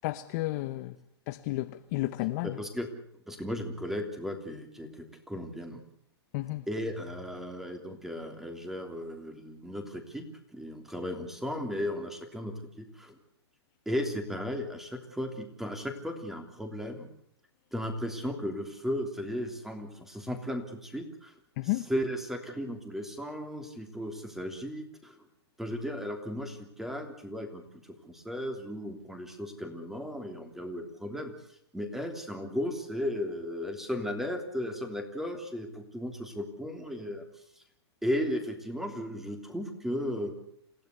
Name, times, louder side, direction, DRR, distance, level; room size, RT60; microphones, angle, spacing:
voice 1, 0.0-0.9 1.3-2.6 6.3-6.6 21.6-21.9, left 19 dB, 40° left, 1.0 m, -32 dB
voice 2, 2.4-5.8 6.7-10.2 10.5-13.2 13.8-17.1 17.7-21.3 21.6-25.2 25.6-31.3 31.7-37.3 38.0-40.3, equal, ahead, 3.1 m, -35 dB
27.5 x 16.0 x 8.2 m
hypercardioid pair, 145°, 14 cm